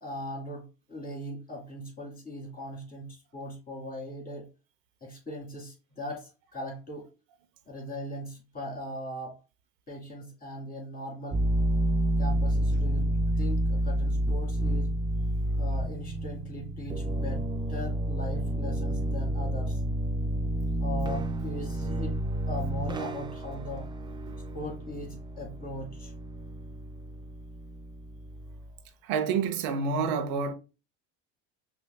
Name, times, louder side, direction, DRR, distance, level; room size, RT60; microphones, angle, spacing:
voice 1, 0.0-4.5 5.0-7.1 7.7-9.4 9.9-11.4 12.2-14.9 15.6-19.8 20.8-22.2 22.5-23.9 24.5-26.1, left 1 dB, 25° left, 2.0 m, -39 dB
sound 1, 11.3-28.7, right 1 dB, 15° right, 0.3 m, -30 dB
voice 2, 29.0-30.5, right 5 dB, 65° right, 0.7 m, -28 dB
5.5 x 2.6 x 2.2 m
supercardioid pair, 100°, 38 cm